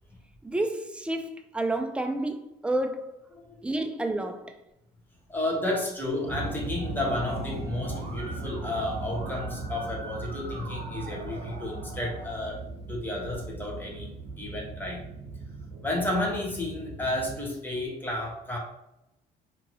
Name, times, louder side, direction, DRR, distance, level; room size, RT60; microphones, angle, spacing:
voice 1, 0.4-3.2 3.6-4.6, right 1 dB, 5° right, 0.3 m, -30 dB
voice 2, 5.3-12.6 12.9-14.1 14.4-15.0 15.8-18.6, left 1 dB, 10° left, 1.0 m, -32 dB
sound 1, 6.2-17.4, right 2 dB, 90° right, 0.6 m, -38 dB
Musical instrument, 6.8-12.4, right 1 dB, 50° right, 0.9 m, -44 dB
2.8 x 2.5 x 3.0 m
cardioid pair, 110°, 17 cm